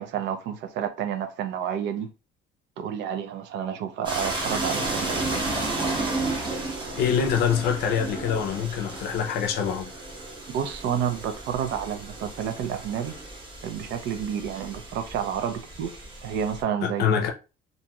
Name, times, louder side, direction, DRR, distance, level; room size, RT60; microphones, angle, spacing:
voice 1, 0.0-2.1 2.8-5.4 10.5-13.1 13.6-15.9 16.2-17.0, right 8 dB, 65° right, 0.5 m, -30 dB
sound 1, 4.0-16.6, right 2 dB, 25° right, 0.6 m, -33 dB
voice 2, 7.0-9.9 16.8-17.3, left 7 dB, 55° left, 0.5 m, -25 dB
2.9 x 2.6 x 2.3 m
cardioid pair, 180°, 20 cm